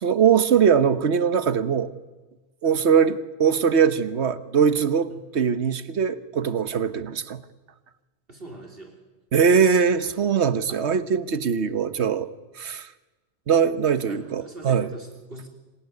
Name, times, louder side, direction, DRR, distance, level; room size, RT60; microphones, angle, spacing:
voice 1, 0.0-1.9 2.6-7.4 9.3-12.3 12.6-12.9 13.5-14.9, right 7 dB, 80° right, 13 dB, 1.4 m, -21 dB
voice 2, 8.3-9.0 10.7-10.9 14.1-15.5, right 2 dB, 60° right, 2 dB, 3.7 m, -42 dB
27.0 x 18.5 x 9.6 m, 1.2 s
omnidirectional pair, 1.1 m